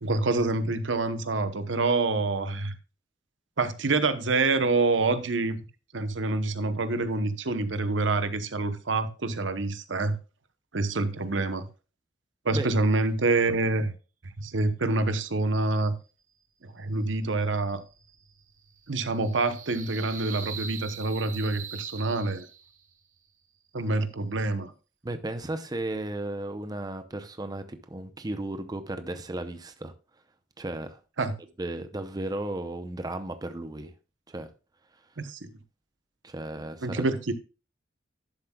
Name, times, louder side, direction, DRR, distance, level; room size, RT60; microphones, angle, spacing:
voice 1, 0.0-2.7 3.6-5.6 5.9-10.2 10.7-11.6 12.4-13.9 14.4-15.9 16.6-17.8 18.9-22.5 23.7-24.7 31.2-31.3 35.2-35.5 36.8-37.3, right 3 dB, 75° right, 0.9 m, -26 dB
sound 1, 16.9-22.9, right 7 dB, 45° right, 1.0 m, -43 dB
voice 2, 25.0-29.9 30.6-31.0 31.6-33.9 34.3-34.5 36.2-37.0, right 1 dB, 20° right, 0.7 m, -34 dB
11.5 x 7.3 x 2.3 m
head